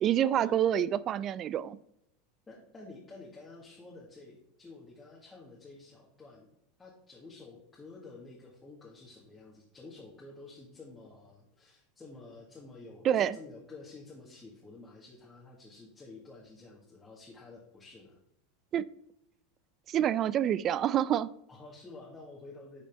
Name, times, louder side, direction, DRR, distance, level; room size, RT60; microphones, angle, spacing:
voice 1, 0.0-1.8 13.0-13.4 18.7-18.8 19.9-21.3, right 10 dB, 35° right, 0.3 m, -27 dB
voice 2, 2.5-6.5 6.8-18.2 21.5-22.8, left 3 dB, 15° left, 1.7 m, -50 dB
10.5 x 5.3 x 3.5 m
supercardioid pair, 135°, 0 cm